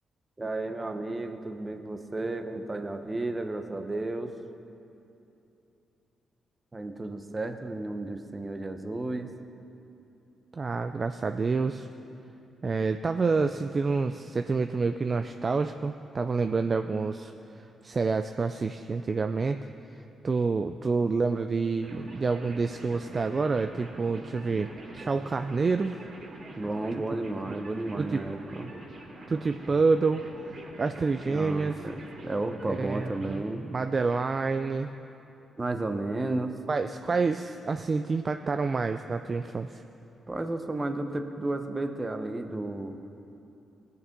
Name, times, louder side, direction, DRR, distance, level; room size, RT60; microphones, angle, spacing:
voice 1, 0.4-4.3 6.7-9.3 26.6-28.7 31.2-33.7 35.6-36.6 40.3-43.0, right 2 dB, 25° right, 7 dB, 0.9 m, -33 dB
voice 2, 10.5-11.9 12.6-19.6 20.2-25.9 27.5-27.6 28.0-28.2 29.3-30.2 30.8-31.8 32.8-33.4 33.7-34.9 36.7-39.8, right 4 dB, 40° right, 8 dB, 0.4 m, -28 dB
sound 1, 21.8-33.4, right 2 dB, 65° right, 2.9 m, -45 dB
18.5 x 6.7 x 5.3 m, 2.8 s
cardioid pair, 70°, 0 cm